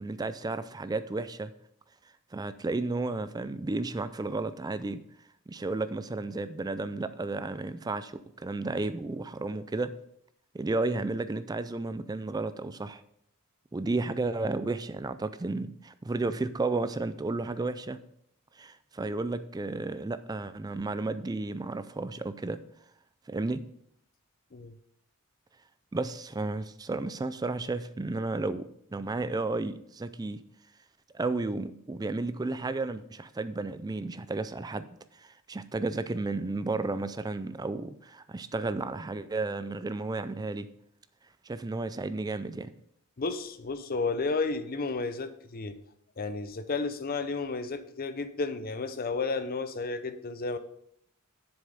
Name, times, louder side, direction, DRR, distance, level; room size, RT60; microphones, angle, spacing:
voice 1, 0.0-1.5 2.3-5.0 5.5-9.9 10.5-13.0 13.7-18.0 18.6-22.6 23.3-23.6 25.9-30.4 31.1-34.9 35.2-40.7 41.5-42.7, right 3 dB, 15° right, 12 dB, 0.3 m, -33 dB
voice 2, 43.2-45.8 46.2-50.6, left 3 dB, 40° left, 10 dB, 0.6 m, -32 dB
7.5 x 7.0 x 5.1 m, 0.71 s
head